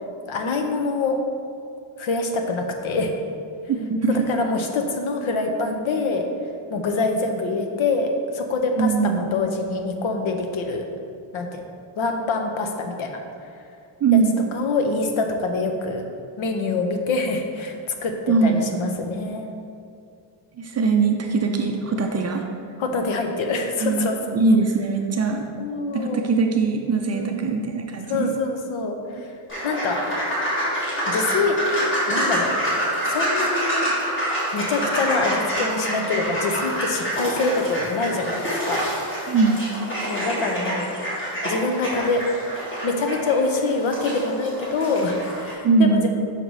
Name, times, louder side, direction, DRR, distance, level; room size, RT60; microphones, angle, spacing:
voice 1, 0.3-1.2 2.0-3.1 4.1-6.2 6.7-10.8 11.3-11.6 12.0-13.2 14.5-16.0 16.4-19.5 22.8-24.4 25.6-26.2 27.1-27.4 28.0-29.3 29.6-30.0 31.1-31.6 32.1-32.5 33.1-33.9 34.5-38.8 40.1-40.9 41.4-42.2 42.8-46.1, left 3 dB, 75° left, 4 dB, 0.9 m, -25 dB
voice 2, 3.8-4.3 8.8-9.4 14.0-14.4 18.3-18.8 20.6-22.4 23.8-25.4 25.9-28.3 39.3-39.6 45.6-46.1, right 4 dB, 35° right, 2 dB, 0.4 m, -21 dB
sound 1, 29.5-45.5, equal, 25° left, 1.7 m, -27 dB
5.8 x 5.3 x 4.8 m, 2.4 s
cardioid pair, 175°, 49 cm